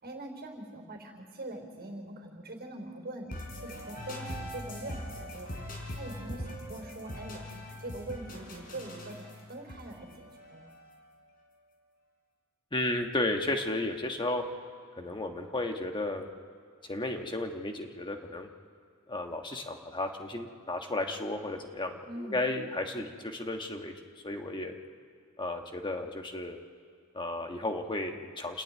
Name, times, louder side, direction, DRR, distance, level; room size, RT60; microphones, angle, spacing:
voice 1, 0.0-3.3 3.6-5.5 6.0-10.7 22.0-22.4, right 1 dB, 45° right, 1 dB, 4.1 m, -43 dB
sound 1, 3.3-11.1, left 1 dB, 40° left, 4.5 m, -42 dB
voice 2, 12.7-14.4 15.0-16.3 16.9-18.5 19.1-23.9 24.2-24.8 25.4-26.6 27.1-28.6, left 2 dB, 20° left, 4 dB, 1.4 m, -33 dB
28.5 x 10.5 x 9.5 m, 2.2 s
head